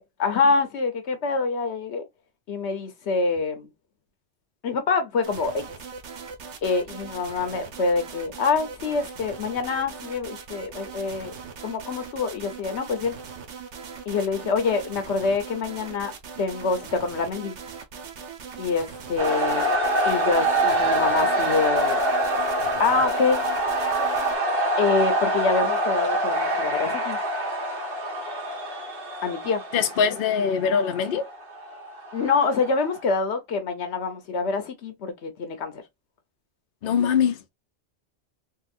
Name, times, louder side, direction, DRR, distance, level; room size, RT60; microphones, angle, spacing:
voice 1, 0.0-2.0 2.5-3.7 4.6-5.6 6.6-11.3 11.6-13.1 14.1-16.1 16.4-17.6 18.6-19.7 20.0-22.0 22.8-23.4 24.8-27.2 29.2-29.6 32.1-35.8, left 4 dB, 80° left, 1.1 m, -26 dB
sound 1, 5.2-24.4, right 5 dB, 90° right, 1.1 m, -40 dB
sound 2, 19.2-33.0, right 1 dB, 55° right, 1.6 m, -25 dB
voice 2, 29.7-31.3 36.8-37.4, left 7 dB, 60° left, 0.7 m, -22 dB
3.7 x 2.3 x 2.5 m
omnidirectional pair, 1.1 m